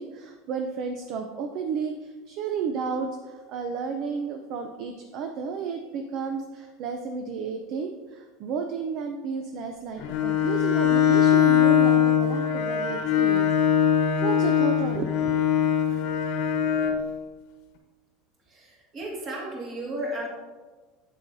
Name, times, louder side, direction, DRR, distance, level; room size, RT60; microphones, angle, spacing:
voice 1, 0.0-13.5 13.7-13.9 14.2-15.3, right 5 dB, 45° right, 5 dB, 0.5 m, -32 dB
Bowed string instrument, 10.0-17.1, left 9 dB, 65° left, 1.1 m, -22 dB
voice 2, 18.5-20.3, right 1 dB, 30° right, -2 dB, 1.9 m, -34 dB
8.2 x 7.6 x 2.7 m, 1.3 s
supercardioid pair, 160°, 0 cm